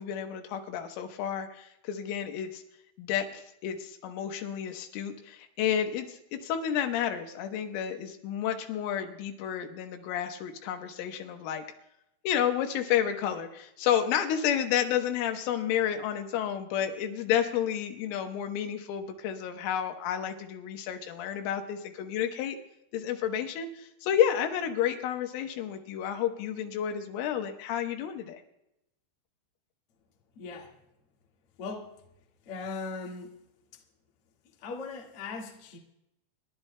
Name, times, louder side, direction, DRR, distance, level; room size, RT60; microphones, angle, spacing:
voice 1, 0.0-2.6 3.0-11.6 12.3-22.6 22.9-28.4, left 9 dB, 85° left, 5 dB, 3.7 m, -31 dB
voice 2, 30.3-30.7 31.6-31.9 32.4-33.4 33.7-33.8 34.6-35.8, left 4 dB, 55° left, 0 dB, 1.6 m, -39 dB
29.0 x 12.0 x 2.2 m, 0.84 s
omnidirectional pair, 5.6 m